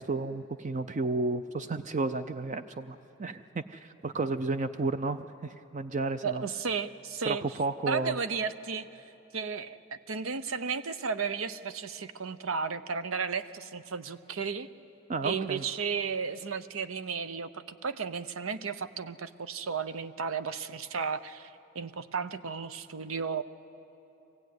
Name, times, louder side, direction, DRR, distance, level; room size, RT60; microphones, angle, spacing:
voice 1, 0.0-6.4 7.3-8.1 15.1-15.7, right 3 dB, 35° right, 10 dB, 0.5 m, -32 dB
voice 2, 6.2-7.4 7.9-8.9 9.3-14.7 15.2-23.4, right 5 dB, 85° right, 13 dB, 0.7 m, -34 dB
24.0 x 16.0 x 9.4 m, 2.9 s
head